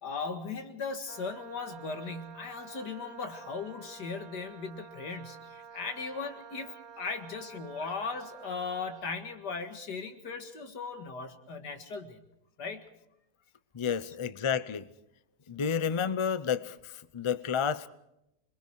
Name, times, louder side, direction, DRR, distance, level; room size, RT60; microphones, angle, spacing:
voice 1, 0.0-5.4 5.7-12.2 12.6-12.8, left 4 dB, 85° left, 7 dB, 2.4 m, -38 dB
Wind instrument woodwind instrument, 1.1-9.1, right 6 dB, 45° right, 1.3 m, -50 dB
voice 2, 13.7-14.9 15.5-17.9, left 7 dB, 50° left, 14 dB, 0.3 m, -30 dB
27.0 x 21.5 x 4.7 m, 0.83 s
omnidirectional pair, 1.7 m